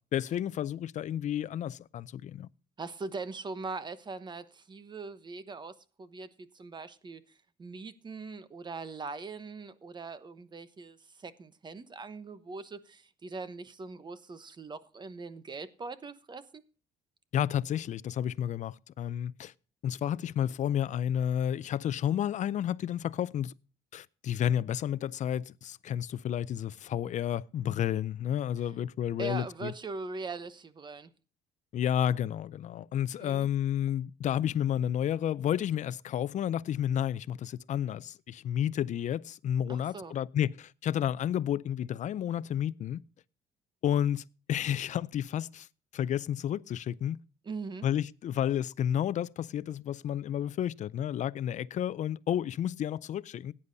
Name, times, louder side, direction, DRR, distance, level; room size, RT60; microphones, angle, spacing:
voice 1, 0.1-2.5 17.3-19.5 19.8-23.5 23.9-29.7 31.7-43.0 43.8-45.7 45.9-47.2 47.8-53.5, left 10 dB, 45° left, 0.4 m, -31 dB
voice 2, 2.8-16.6 29.2-31.1 33.2-33.5 39.7-40.2 47.4-47.9, right 4 dB, 25° right, 1.0 m, -41 dB
17.0 x 9.7 x 2.7 m
cardioid pair, 110°, 17 cm